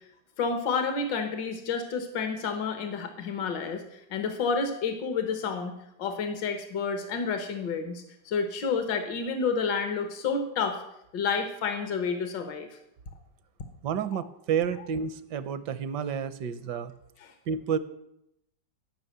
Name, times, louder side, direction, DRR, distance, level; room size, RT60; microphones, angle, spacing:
voice 1, 0.4-5.7 6.0-10.8 11.1-12.7 17.2-17.3, left 5 dB, 75° left, 7 dB, 1.9 m, -30 dB
voice 2, 13.8-16.9 17.5-17.8, right 7 dB, 70° right, 14 dB, 1.4 m, -30 dB
13.5 x 6.1 x 9.2 m, 0.81 s
omnidirectional pair, 2.0 m